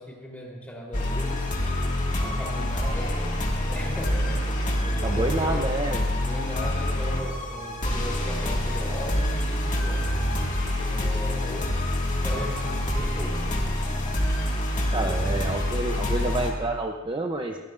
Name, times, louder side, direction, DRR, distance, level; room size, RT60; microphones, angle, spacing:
voice 1, 0.0-3.1 3.7-4.5 4.8-5.7 6.2-10.0 10.9-11.7 12.2-13.7 14.8-15.4, equal, 10° left, -3 dB, 3.7 m, -38 dB
sound 1, 0.9-16.5, left 1 dB, 40° left, 2.1 m, -26 dB
voice 2, 5.0-6.1 14.9-17.6, right 2 dB, 25° right, 3 dB, 0.7 m, -28 dB
23.5 x 16.0 x 2.6 m, 1.4 s
head